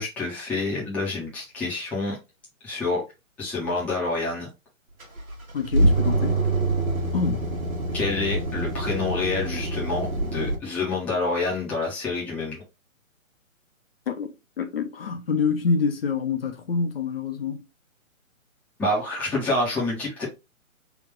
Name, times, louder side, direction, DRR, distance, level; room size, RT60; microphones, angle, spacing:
voice 1, 0.0-2.2 2.6-3.0 3.4-4.5 7.9-12.6 18.8-20.3, left 3 dB, 5° left, 0.6 m, -27 dB
sound 1, 5.0-10.5, right 2 dB, 85° right, 1.3 m, -25 dB
voice 2, 5.5-6.4 7.1-7.4 14.1-14.3 14.6-17.7, left 5 dB, 45° left, 0.6 m, -26 dB
3.5 x 2.3 x 3.6 m
figure-of-eight pair, 140°, 41 cm